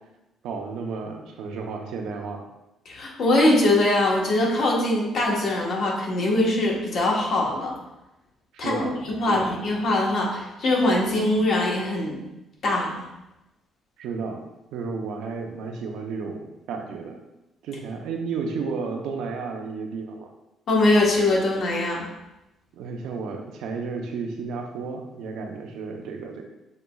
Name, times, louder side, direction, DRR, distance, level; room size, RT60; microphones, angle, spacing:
voice 1, 0.4-2.4 8.5-9.0 9.3-9.5 14.0-14.4 14.7-17.2 17.6-20.3 22.7-26.4, right 4 dB, 85° right, 2 dB, 0.6 m, -32 dB
voice 2, 2.9-7.8 8.6-12.2 12.6-12.9 20.7-22.1, left 2 dB, 60° left, -2 dB, 1.1 m, -22 dB
6.4 x 2.9 x 2.3 m, 0.95 s
cardioid pair, 130°, 0 cm